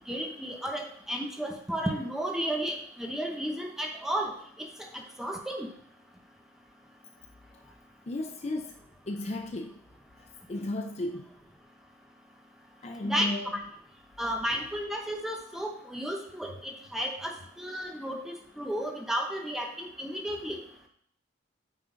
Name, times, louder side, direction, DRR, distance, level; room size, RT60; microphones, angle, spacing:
voice 1, 0.1-4.3 4.9-5.7 13.0-13.6 14.2-20.6, equal, ahead, 1 dB, 0.9 m, -33 dB
voice 2, 8.1-8.7 9.1-9.8 10.5-11.3 12.8-13.6 14.5-14.6, left 1 dB, 35° left, 3 dB, 0.5 m, -34 dB
9.0 x 3.8 x 3.8 m, 0.65 s
head